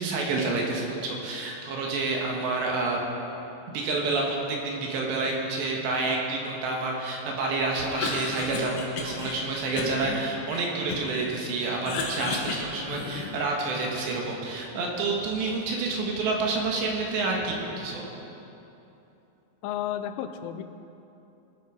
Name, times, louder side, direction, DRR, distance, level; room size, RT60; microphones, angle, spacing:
voice 1, 0.0-3.0 3.7-18.0, right 3 dB, 70° right, -1 dB, 3.5 m, -29 dB
Cough, 7.8-9.4 9.8-11.2 11.6-13.5, left 3 dB, 65° left, 2.0 m, -33 dB
voice 2, 19.6-20.6, left 10 dB, 85° left, 9 dB, 3.1 m, -32 dB
20.0 x 9.2 x 4.7 m, 2.9 s
omnidirectional pair, 5.5 m